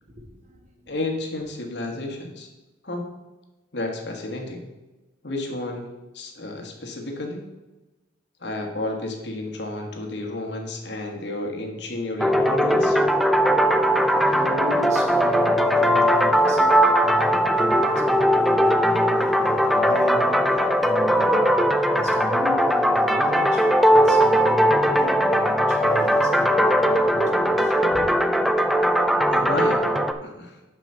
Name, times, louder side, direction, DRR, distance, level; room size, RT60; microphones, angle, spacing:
voice 1, 0.2-0.9 13.6-28.2, equal, 40° right, 1.1 m, -35 dB
voice 2, 0.9-2.5 2.8-3.1 3.7-4.6 5.2-7.4 8.4-13.0 29.3-29.8 30.2-30.6, left 2 dB, 65° left, 1.4 m, -31 dB
sound 1, 12.2-30.1, equal, ahead, 0.3 m, -19 dB
6.1 x 5.6 x 6.7 m
head